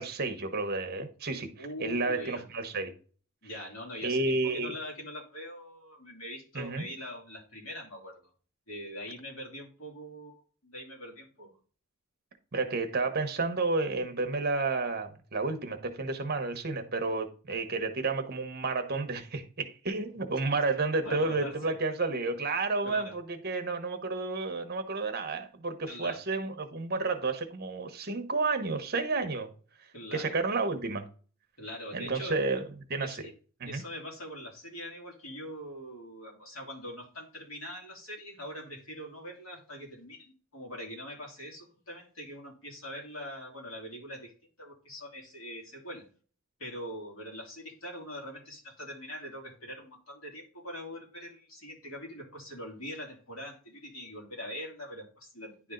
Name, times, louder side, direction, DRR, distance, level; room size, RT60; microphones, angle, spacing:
voice 1, 0.0-2.9 4.0-4.7 6.5-6.9 12.5-29.5 30.1-31.1 31.9-33.2 33.6-33.8, right 3 dB, 45° right, 1.1 m, -31 dB
voice 2, 1.6-2.5 3.4-8.2 8.7-11.6 21.0-21.8 22.8-23.2 25.9-26.2 29.9-30.4 31.6-32.4 33.0-33.3 33.6-46.1 46.6-55.7, equal, 70° left, 3.0 m, -43 dB
10.5 x 3.6 x 3.8 m
head